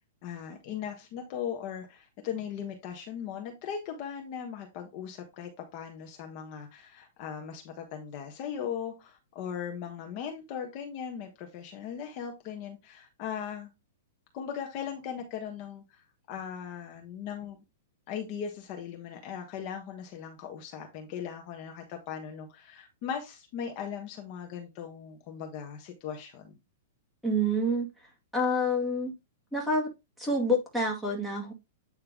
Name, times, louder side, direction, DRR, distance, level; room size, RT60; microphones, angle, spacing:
voice 1, 0.2-13.7 14.3-17.6 18.1-26.5, left 8 dB, 40° left, 1.3 m, -38 dB
voice 2, 27.2-27.9 28.3-29.1 29.5-29.9 30.2-31.5, equal, ahead, 2.0 m, -27 dB
9.1 x 3.3 x 3.6 m
hypercardioid pair, 155°, 0 cm